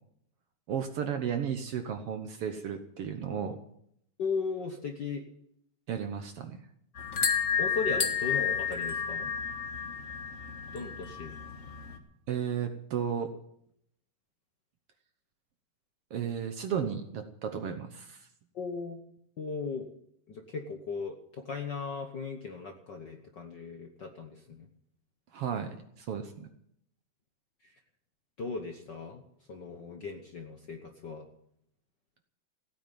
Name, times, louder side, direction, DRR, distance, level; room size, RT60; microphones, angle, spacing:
voice 1, 0.7-3.6 5.9-6.6 12.3-13.3 16.1-18.2 25.3-26.5, right 7 dB, 65° right, 7 dB, 1.6 m, -34 dB
voice 2, 4.2-5.2 7.6-9.3 10.7-11.4 18.5-19.0 19.4-19.9 20.3-24.7 28.4-29.2 29.5-31.3, left 4 dB, 55° left, 4 dB, 1.2 m, -37 dB
sound 1, 7.0-12.0, left 6 dB, 35° left, 1.2 m, -31 dB
16.0 x 9.2 x 9.1 m, 0.73 s
omnidirectional pair, 3.5 m